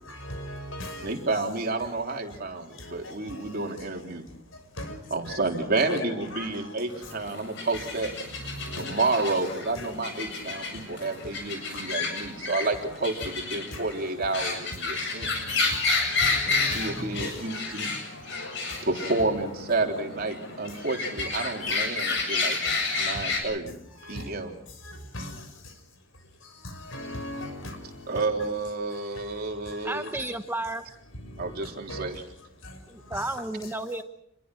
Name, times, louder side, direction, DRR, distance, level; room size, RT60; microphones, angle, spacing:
voice 1, 0.2-1.2 4.8-4.9 5.3-5.4 5.9-6.0 6.3-6.5 8.6-9.3 15.7-15.8 16.5-17.6 18.3-18.5 19.0-19.1 24.1-24.3 25.1-25.3 26.9-27.8 28.1-28.3 31.4-31.5 31.9-32.1 33.1-33.3, left 1 dB, 80° left, 8 dB, 6.0 m, -37 dB
voice 2, 1.0-4.2 5.1-8.1 8.7-15.3 16.5-18.0 18.8-22.6 23.0-23.8 24.1-24.5 28.1-30.1 31.4-32.2, right 3 dB, 50° right, 2 dB, 3.7 m, -30 dB
sound 1, 6.9-23.4, left 3 dB, 65° left, 8.0 m, -31 dB
voice 3, 29.8-30.8 32.9-34.0, right 2 dB, 10° right, 8 dB, 1.2 m, -32 dB
28.0 x 22.0 x 6.2 m, 0.71 s
head